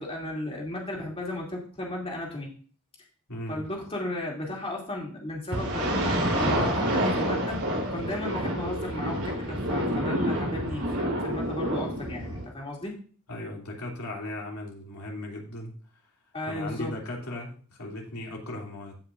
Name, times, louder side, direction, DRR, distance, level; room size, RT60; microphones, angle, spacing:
voice 1, 0.0-2.5 3.5-7.6 7.9-12.9 16.3-16.9, left 1 dB, 25° left, -2 dB, 2.6 m, -35 dB
voice 2, 3.3-3.6 13.3-15.7 16.5-18.9, left 1 dB, 85° left, 0 dB, 2.7 m, -37 dB
sound 1, 5.5-12.5, right 1 dB, 75° right, 3.4 m, -28 dB
16.0 x 5.7 x 2.5 m, 0.42 s
head